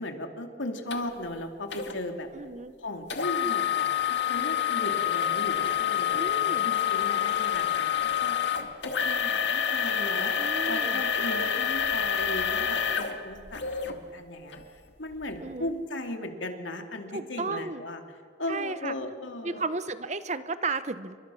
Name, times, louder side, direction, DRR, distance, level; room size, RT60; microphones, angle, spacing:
voice 1, 0.0-2.3 2.8-7.9 8.2-8.4 8.8-18.0 18.4-19.6, left 1 dB, 85° left, 5 dB, 2.6 m, -37 dB
sound 1, 0.9-1.0 1.7-1.9 3.1-13.9 14.5-14.6 15.2-15.4, left 9 dB, 70° left, 2.1 m, -27 dB
voice 2, 2.3-2.7 6.1-6.7 10.4-11.0 15.4-15.7 17.1-17.8 18.5-18.9 19.4-21.2, right 3 dB, 40° right, 13 dB, 0.9 m, -33 dB
29.0 x 24.5 x 6.3 m, 2.1 s
head